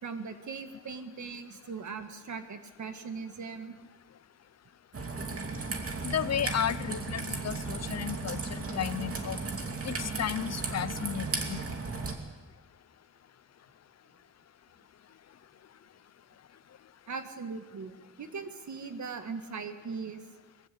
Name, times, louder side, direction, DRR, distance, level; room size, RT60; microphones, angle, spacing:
voice 1, 0.0-3.8 17.1-20.2, right 5 dB, 65° right, 8 dB, 1.8 m, -39 dB
Raindrop / Trickle dribble, 4.9-12.1, right 3 dB, 45° right, 2.5 m, -35 dB
voice 2, 6.0-9.4 9.8-11.6, left 9 dB, 55° left, 17 dB, 0.7 m, -33 dB
21.0 x 15.0 x 8.4 m, 1.3 s
wide cardioid pair, 105°, 32 cm